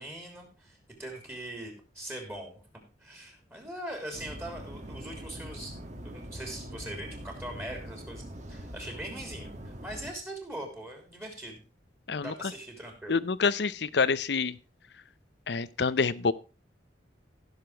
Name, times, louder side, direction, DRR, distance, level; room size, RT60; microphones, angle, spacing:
voice 1, 0.0-2.6 3.0-5.8 6.0-11.6 12.2-13.2, right 1 dB, 15° right, 3 dB, 3.2 m, -41 dB
sound 1, 4.1-10.1, equal, 40° right, 2.1 m, -43 dB
voice 2, 12.1-12.5 13.1-14.6 15.5-16.3, left 5 dB, 65° left, 18 dB, 0.6 m, -27 dB
15.5 x 6.7 x 4.5 m, 0.30 s
head